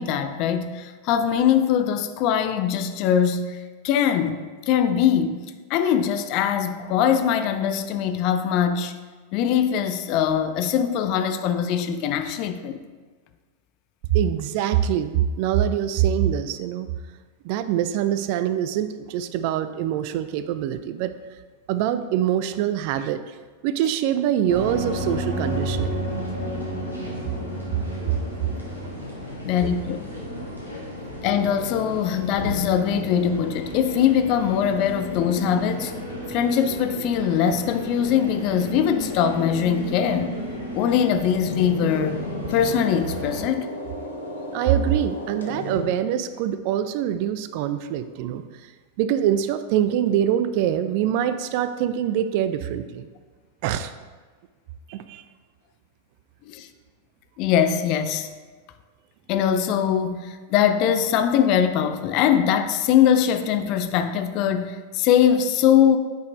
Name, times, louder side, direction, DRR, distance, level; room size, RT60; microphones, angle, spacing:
voice 1, 0.0-5.4 5.7-8.9 9.3-12.8 29.4-30.1 31.2-35.9 36.3-40.4 40.7-42.2 42.5-43.7 56.5-56.7 57.4-58.3 59.3-66.0, left 8 dB, 40° left, 0.4 m, -22 dB
voice 2, 14.1-16.9 17.4-21.1 21.7-23.2 23.6-26.0 28.1-28.2 44.5-48.4 49.0-53.1 53.6-53.9 54.9-55.2, right 10 dB, 45° right, 0.3 m, -24 dB
sound 1, 24.5-43.4, equal, 90° left, 1.5 m, -33 dB
sound 2, 28.4-38.9 41.4-45.9, left 1 dB, 70° left, 0.9 m, -38 dB
8.8 x 5.1 x 2.6 m
figure-of-eight pair, 90°, 0 cm